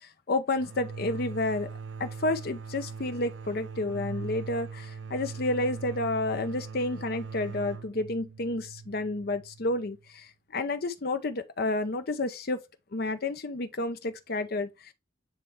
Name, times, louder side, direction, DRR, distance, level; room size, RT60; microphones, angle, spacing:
voice 1, 0.3-1.7 2.0-12.6 12.9-14.9, left 2 dB, 55° left, 0.6 m, -30 dB
sound 1, 0.6-10.1, right 5 dB, 65° right, 0.4 m, -41 dB
8.6 x 3.2 x 3.4 m
head